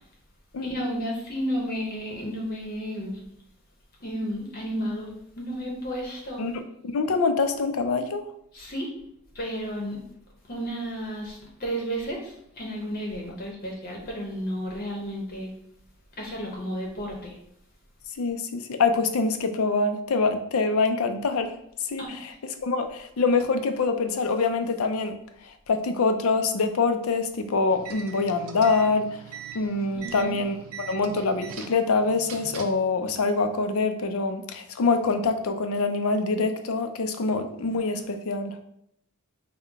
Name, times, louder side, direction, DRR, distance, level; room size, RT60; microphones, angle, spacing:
voice 1, 0.6-3.2 4.0-6.4 8.5-8.9 9.3-10.0 10.5-15.5 16.2-17.4 22.0-22.2 29.9-30.3, equal, 45° left, -1 dB, 0.9 m, -32 dB
voice 2, 6.8-8.2 18.2-21.5 21.8-22.3 22.6-25.1 25.7-29.2 29.5-38.6, left 4 dB, 85° left, 7 dB, 0.5 m, -25 dB
sound 1, 27.7-32.9, right 7 dB, 80° right, 0.5 m, -42 dB
5.6 x 2.2 x 3.4 m, 0.73 s
head